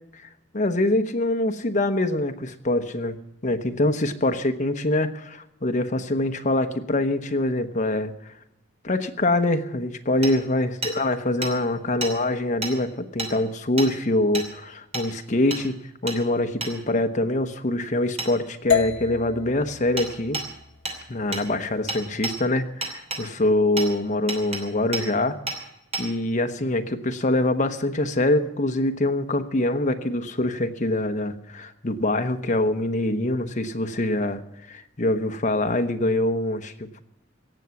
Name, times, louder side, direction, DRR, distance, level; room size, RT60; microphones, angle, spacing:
voice 1, 0.5-3.2 3.4-8.3 8.8-15.8 16.0-20.4 21.1-25.4 26.0-34.4 34.7-37.0, left 1 dB, 40° left, 7 dB, 1.0 m, -24 dB
Hammer, 10.2-10.3 10.8-11.0 11.4-11.5 12.0-12.1 12.6-12.7 13.2-13.3 13.8-13.9 14.3-14.5 14.9-15.1 15.5-15.6 16.1-16.2 16.6-16.7 18.2-18.3 20.0-20.1 20.3-20.5 20.9-21.0 21.3-21.5 21.9-22.4 22.8-23.2 23.8-23.9 24.3-24.6 24.9-25.1 25.5-25.6 25.9-26.1, right 2 dB, 35° right, 3.0 m, -30 dB
sound 1, 18.7-22.8, left 8 dB, 80° left, 1.0 m, -31 dB
17.0 x 7.1 x 9.4 m, 0.83 s
head